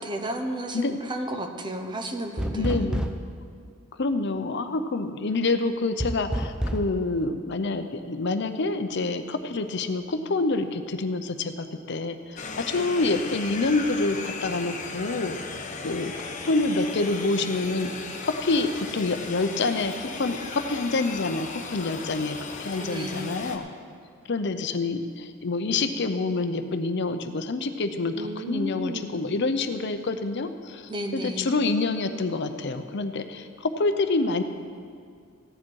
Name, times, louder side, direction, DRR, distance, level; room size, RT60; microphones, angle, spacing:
voice 1, 0.0-3.0 12.7-12.9 22.7-23.4 28.2-29.1 30.9-31.5, equal, 25° right, 5 dB, 0.9 m, -33 dB
sound 1, 2.4-3.4 6.0-6.9, equal, 5° right, 0.6 m, -28 dB
voice 2, 2.5-3.1 4.0-15.3 15.8-17.9 18.4-23.7 24.3-33.5 33.8-34.4, left 3 dB, 55° left, 8 dB, 0.7 m, -27 dB
sound 2, 12.4-23.6, left 4 dB, 35° left, 1.0 m, -36 dB
16.0 x 10.0 x 4.7 m, 2.2 s
head